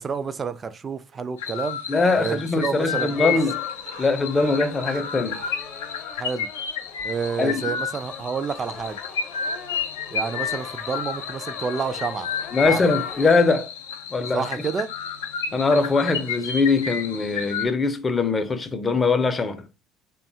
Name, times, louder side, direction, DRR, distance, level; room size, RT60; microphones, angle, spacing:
voice 1, 0.0-1.8 2.2-3.4 6.1-6.5 7.0-9.0 10.1-12.3 12.6-12.8 14.3-14.9, right 5 dB, 35° right, 0.3 m, -29 dB
sound 1, 1.1-1.7 2.0-2.2 2.5-2.7 2.9-6.0 6.3-6.4 6.8-6.9, right 5 dB, 60° right, 0.7 m, -44 dB
sound 2, 1.4-17.7, left 7 dB, 80° left, 0.3 m, -31 dB
voice 2, 1.9-3.6 4.0-5.4 7.4-7.8 12.5-13.7 14.1-14.5 15.5-19.6, left 3 dB, 25° left, 0.5 m, -22 dB
sound 3, 2.9-13.3, left 6 dB, 55° left, 0.8 m, -41 dB
2.6 x 2.2 x 2.6 m
hypercardioid pair, 65°, 0 cm